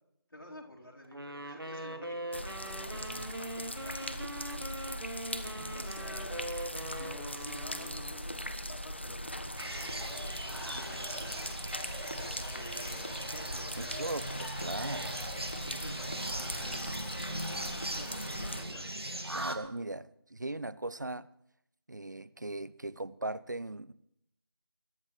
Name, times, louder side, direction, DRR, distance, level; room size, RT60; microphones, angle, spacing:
voice 1, 0.3-4.2 4.5-4.6 5.3-14.1 15.6-18.9, left 1 dB, 75° left, 4.0 m, -51 dB
Wind instrument woodwind instrument, 1.1-8.3, right 1 dB, 65° right, 1.9 m, -41 dB
sound 1, 2.3-18.7, left 1 dB, 30° left, 0.6 m, -40 dB
voice 2, 5.4-5.7 13.7-15.2 19.3-21.3 21.9-23.9, right 2 dB, 50° right, 0.5 m, -39 dB
sound 2, 9.6-19.6, right 1 dB, 80° right, 1.9 m, -39 dB
22.0 x 11.0 x 3.2 m
figure-of-eight pair, 175°, 13 cm